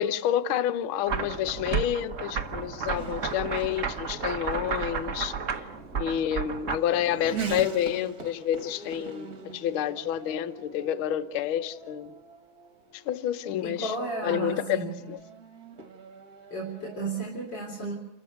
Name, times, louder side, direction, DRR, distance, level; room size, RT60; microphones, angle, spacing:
voice 1, 0.0-5.3 5.9-12.2 12.9-13.9 14.2-14.6 15.1-15.2, left 10 dB, 70° left, 1.2 m, -29 dB
Race car auto racing / Accelerating revving vroom, 0.9-17.2, right 5 dB, 35° right, 1.7 m, -43 dB
sound 1, 1.1-6.8, right 6 dB, 70° right, 0.7 m, -32 dB
voice 2, 13.6-15.0 16.5-17.9, right 3 dB, 35° left, 4.4 m, -33 dB
29.0 x 14.0 x 8.0 m
omnidirectional pair, 3.5 m